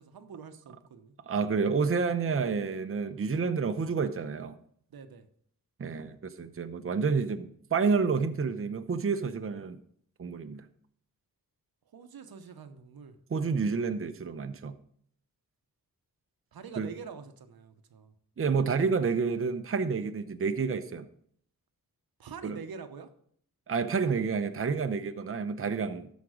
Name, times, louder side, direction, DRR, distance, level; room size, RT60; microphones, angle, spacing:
voice 1, 0.0-1.2 2.3-2.4 4.9-5.3 11.9-13.2 16.5-18.1 22.2-23.1 24.1-24.2, right 6 dB, 80° right, 1.0 m, -45 dB
voice 2, 1.3-4.6 5.8-9.8 10.2-10.6 13.3-14.8 16.8-16.9 18.4-21.1 22.4-22.6 23.7-26.1, right 5 dB, 35° right, 0.8 m, -29 dB
13.0 x 5.2 x 5.0 m
wide cardioid pair, 80°, 36 cm